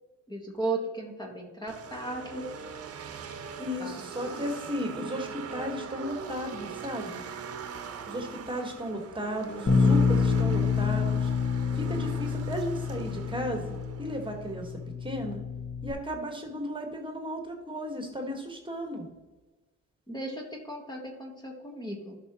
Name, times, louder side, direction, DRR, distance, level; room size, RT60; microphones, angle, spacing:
voice 1, 0.3-2.5 3.8-4.4 9.4-9.7 20.1-22.2, right 2 dB, 15° left, 1 dB, 1.4 m, -36 dB
snowmobiles pass by nearby short, 1.7-14.7, right 6 dB, 50° right, 0.9 m, -41 dB
voice 2, 3.6-7.2 8.1-11.3 11.7-14.7 15.0-15.4 15.8-19.1, equal, 15° right, 3 dB, 1.6 m, -35 dB
Bass guitar, 9.7-15.9, left 5 dB, 40° left, 1.3 m, -27 dB
12.0 x 5.8 x 3.0 m, 1.2 s
cardioid pair, 90°, 30 cm